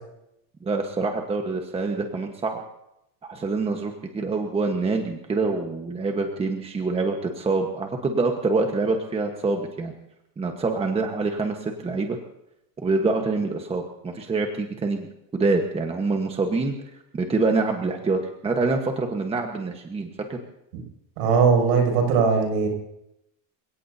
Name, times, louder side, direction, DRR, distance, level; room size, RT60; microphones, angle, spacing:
voice 1, 0.6-2.6 3.2-9.9 10.4-12.2 12.8-15.1 15.3-16.7 17.1-20.4, right 3 dB, 15° right, 4 dB, 1.3 m, -25 dB
voice 2, 21.2-22.7, right 5 dB, 65° right, 3 dB, 7.2 m, -19 dB
28.5 x 17.5 x 2.8 m, 0.81 s
cardioid pair, 160°, 44 cm